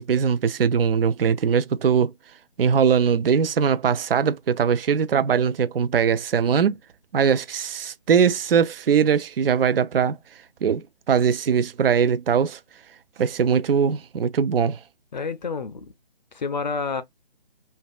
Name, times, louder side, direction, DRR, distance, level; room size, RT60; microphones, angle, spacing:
voice 1, 0.0-2.1 2.6-6.7 7.1-10.2 10.6-12.6 13.2-14.8, right 7 dB, 75° right, 0.4 m, -21 dB
voice 2, 15.1-15.9 16.3-17.0, left 4 dB, 50° left, 0.4 m, -29 dB
2.6 x 2.1 x 2.3 m
figure-of-eight pair, 150°, 29 cm